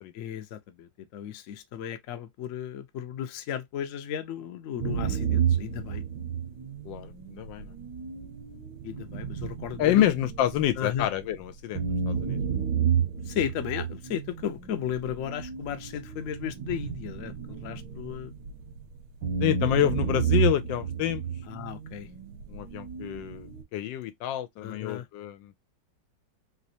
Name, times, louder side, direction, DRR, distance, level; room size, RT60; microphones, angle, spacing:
voice 1, 0.1-6.0 8.8-10.0 10.8-11.1 13.3-18.3 21.5-22.1 24.6-25.1, left 9 dB, 65° left, 0.8 m, -35 dB
sound 1, 4.8-11.3 11.8-18.8 19.2-23.6, right 7 dB, 75° right, 1.3 m, -31 dB
voice 2, 6.8-7.7 9.8-12.4 19.4-21.2 22.5-25.5, left 12 dB, 85° left, 1.3 m, -28 dB
3.4 x 3.0 x 2.7 m
omnidirectional pair, 2.0 m